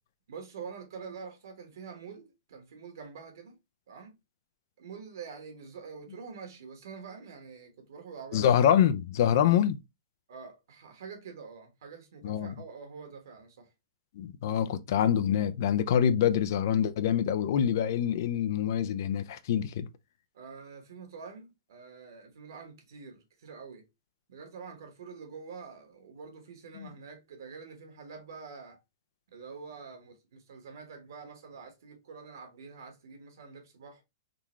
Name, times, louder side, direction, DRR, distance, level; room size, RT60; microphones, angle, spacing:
voice 1, 0.3-3.6 3.9-4.2 4.8-8.5 10.3-13.7 20.3-23.9 24.3-28.8 29.3-34.0, right 5 dB, 75° right, 1.3 m, -46 dB
voice 2, 8.3-9.8 12.2-12.5 14.2-19.9 26.8-26.9, left 9 dB, 60° left, 0.4 m, -25 dB
3.7 x 2.3 x 3.0 m
hypercardioid pair, 145°, 2 cm